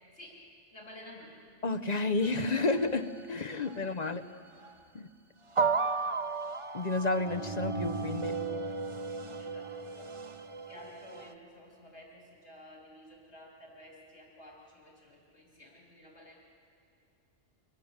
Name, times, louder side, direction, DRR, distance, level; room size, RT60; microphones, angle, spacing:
voice 1, 0.1-1.4 4.1-4.2 9.4-10.2 10.6-16.4, left 1 dB, 65° left, -2 dB, 3.5 m, -52 dB
voice 2, 1.6-4.2 4.9-5.1 6.7-8.4, left 3 dB, 40° left, 8 dB, 0.8 m, -31 dB
sound 1, 2.2-3.2 3.6-3.8 4.6-4.8 5.5-11.3, right 4 dB, 30° right, 0.7 m, -35 dB
29.0 x 24.0 x 7.3 m, 2.4 s
omnidirectional pair, 1.2 m